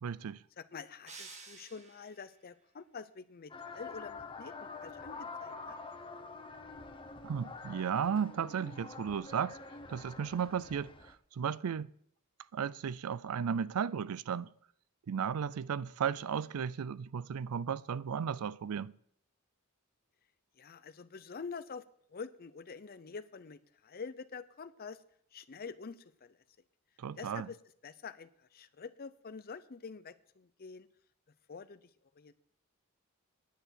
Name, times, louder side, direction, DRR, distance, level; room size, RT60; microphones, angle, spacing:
voice 1, 0.0-0.4 7.2-9.6 9.9-11.9 12.5-14.5 15.1-18.9 27.0-27.5, right 7 dB, 85° right, 0.4 m, -35 dB
voice 2, 0.6-5.8 20.6-21.8 22.1-25.0 25.3-26.4 27.2-27.6 27.8-30.9 31.5-31.9 32.2-32.3, left 5 dB, 45° left, 0.6 m, -47 dB
sound 1, 1.1-2.3, right 4 dB, 30° right, 1.4 m, -51 dB
sound 2, 3.5-11.1, left 4 dB, 25° left, 0.9 m, -47 dB
10.0 x 6.8 x 8.2 m
head